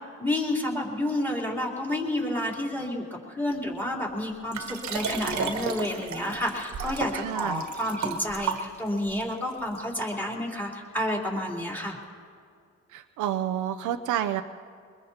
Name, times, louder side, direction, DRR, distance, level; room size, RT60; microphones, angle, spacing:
voice 1, 0.2-12.0, left 1 dB, 5° left, -2 dB, 3.5 m, -30 dB
Liquid, 4.5-9.1 9.7-9.8, right 5 dB, 65° right, 1.5 m, -33 dB
voice 2, 7.1-7.6 12.9-14.4, right 11 dB, 80° right, 8 dB, 0.6 m, -29 dB
23.5 x 21.0 x 2.9 m, 2.2 s
cardioid pair, 90°, 30 cm